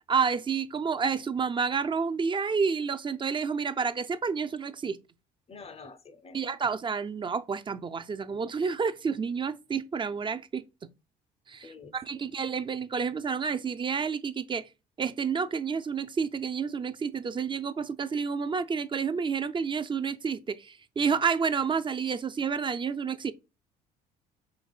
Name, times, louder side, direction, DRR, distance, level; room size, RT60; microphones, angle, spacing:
voice 1, 0.1-5.0 6.3-10.6 11.5-14.7 15.0-23.3, right 6 dB, 25° right, 0.4 m, -30 dB
voice 2, 5.5-6.4 11.6-12.2, left 4 dB, 30° left, 0.6 m, -48 dB
5.1 x 3.1 x 2.3 m
hypercardioid pair, 65°, 21 cm